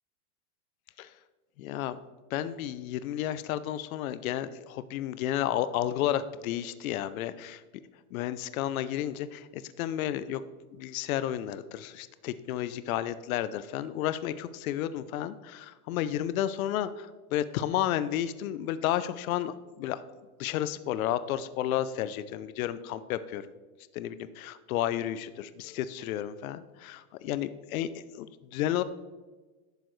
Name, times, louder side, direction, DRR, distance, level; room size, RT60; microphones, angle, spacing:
voice 1, 1.6-2.0 2.3-7.6 8.1-10.4 10.7-20.0 20.4-23.5 23.9-28.8, left 12 dB, 65° left, 14 dB, 0.6 m, -32 dB
10.5 x 6.8 x 3.1 m, 1.3 s
supercardioid pair, 160°, 45 cm